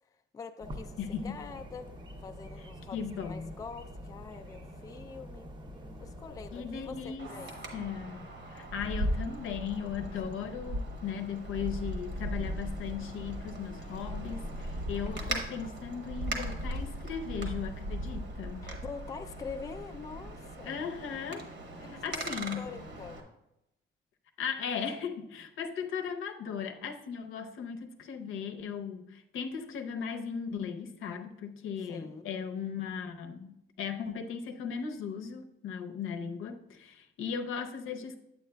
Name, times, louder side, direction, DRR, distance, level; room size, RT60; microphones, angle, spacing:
voice 1, 0.3-1.0 1.2-1.9 2.2-5.5 6.0-7.6 18.6-20.8 21.8-23.3 31.8-32.3, left 5 dB, 20° left, 7 dB, 0.3 m, -44 dB
sound 1, 0.6-7.2, equal, 25° right, 0.6 m, -46 dB
voice 2, 1.0-1.4 2.9-3.5 6.5-7.3 7.7-18.7 20.6-21.5 22.0-22.7 24.4-38.2, left 7 dB, 85° left, 6 dB, 0.7 m, -37 dB
Wind, 7.2-23.2, right 1 dB, 60° right, 1.1 m, -38 dB
8.6 x 8.1 x 2.2 m, 0.87 s
cardioid pair, 140°, 20 cm